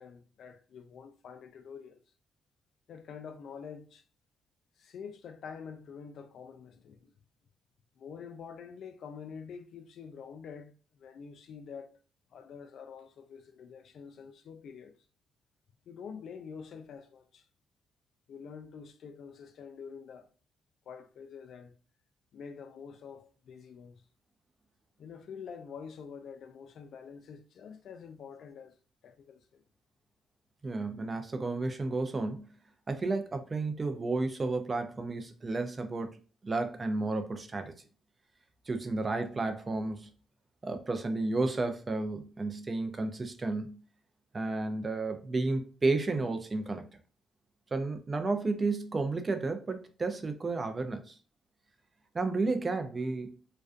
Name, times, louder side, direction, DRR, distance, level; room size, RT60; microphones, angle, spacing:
voice 1, 0.0-2.0 2.9-4.0 4.8-7.1 8.0-12.0 12.3-14.9 15.9-17.5 18.3-20.3 20.9-21.7 22.3-24.0 25.0-28.8 29.0-29.6, left 6 dB, 65° left, 0.3 m, -47 dB
voice 2, 30.6-32.4 32.9-36.2 36.4-37.7 38.7-40.1 40.6-43.8 44.3-46.9 47.7-51.2 52.1-53.4, right 3 dB, 30° right, 0.4 m, -32 dB
2.4 x 2.2 x 2.4 m
cardioid pair, 90°, 0 cm